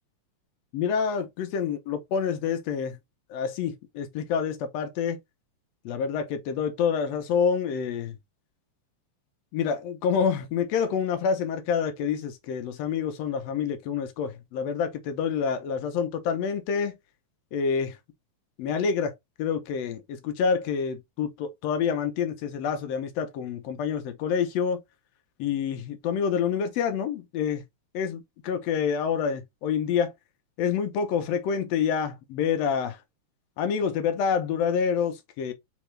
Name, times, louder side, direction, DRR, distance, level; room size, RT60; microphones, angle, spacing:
voice 1, 0.7-3.0 3.3-5.2 5.8-8.2 9.5-17.0 17.5-18.0 18.6-19.1 19.4-24.8 25.4-27.6 27.9-30.1 30.6-33.0 33.6-35.5, left 6 dB, 75° left, 1.6 m, -27 dB
4.5 x 3.5 x 3.1 m
omnidirectional pair, 3.5 m